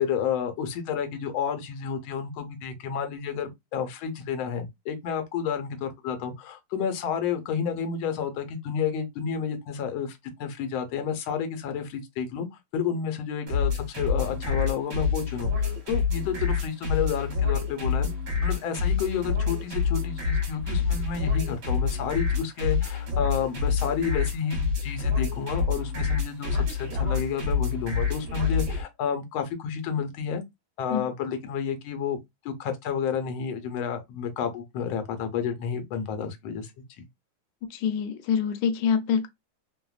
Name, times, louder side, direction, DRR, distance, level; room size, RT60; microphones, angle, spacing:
voice 1, 0.0-12.5 12.7-18.1 18.4-30.4 30.8-32.2 32.4-36.7 37.0-37.1, left 7 dB, 90° left, 1.4 m, -30 dB
sound 1, 13.5-28.8, left 5 dB, 50° right, 1.3 m, -27 dB
voice 2, 37.7-39.3, left 7 dB, 75° left, 1.1 m, -25 dB
3.3 x 2.1 x 2.3 m
omnidirectional pair, 2.2 m